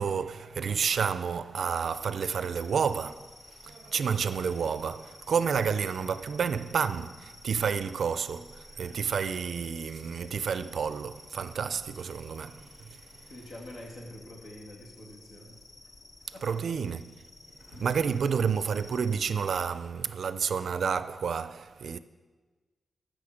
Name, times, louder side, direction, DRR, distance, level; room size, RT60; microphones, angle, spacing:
voice 1, 0.0-3.3 3.6-13.0 16.4-17.2 17.8-22.0, right 6 dB, 65° right, 0.4 m, -30 dB
sound 1, 1.6-19.7, left 3 dB, 45° left, 0.8 m, -53 dB
voice 2, 13.3-15.5 16.3-16.6 17.6-17.9, left 1 dB, 85° left, 2.6 m, -46 dB
15.0 x 6.4 x 5.0 m
wide cardioid pair, 155°, 0 cm